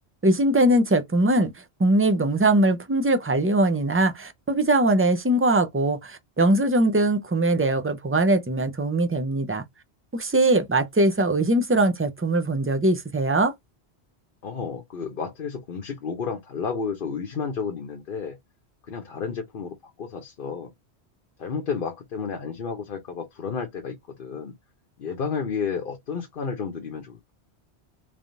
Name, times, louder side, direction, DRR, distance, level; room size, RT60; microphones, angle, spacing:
voice 1, 0.2-1.5 1.8-9.6 10.1-13.5, right 1 dB, 20° right, 0.4 m, -21 dB
voice 2, 14.4-18.4 18.9-20.7 21.4-24.5 25.0-27.3, left 6 dB, 55° left, 1.0 m, -31 dB
3.5 x 3.5 x 2.6 m
omnidirectional pair, 1.1 m